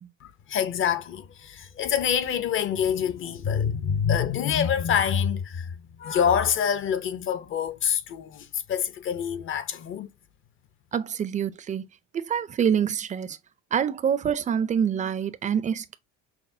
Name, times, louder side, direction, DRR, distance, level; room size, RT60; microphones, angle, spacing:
voice 1, 0.2-10.1, left 8 dB, 40° left, 0.6 m, -26 dB
voice 2, 10.9-11.9 12.1-13.4 13.7-16.0, right 8 dB, 25° right, 0.4 m, -26 dB
5.9 x 2.1 x 2.6 m
supercardioid pair, 110°, 31 cm